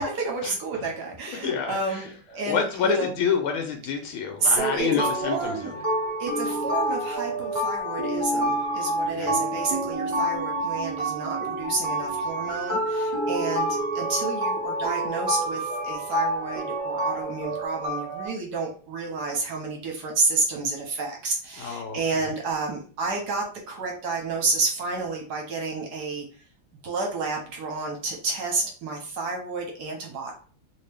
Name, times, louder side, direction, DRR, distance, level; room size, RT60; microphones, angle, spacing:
voice 1, 0.0-3.1 4.4-5.7 6.2-26.2 26.8-30.3, right 3 dB, 60° right, 1 dB, 1.2 m, -30 dB
voice 2, 1.3-2.0 2.5-5.8 9.2-9.4 21.6-22.3, left 6 dB, 80° left, 4 dB, 1.4 m, -28 dB
sound 1, 4.6-18.3, right 1 dB, 25° right, 1.2 m, -28 dB
3.0 x 2.7 x 3.3 m, 0.39 s
omnidirectional pair, 2.3 m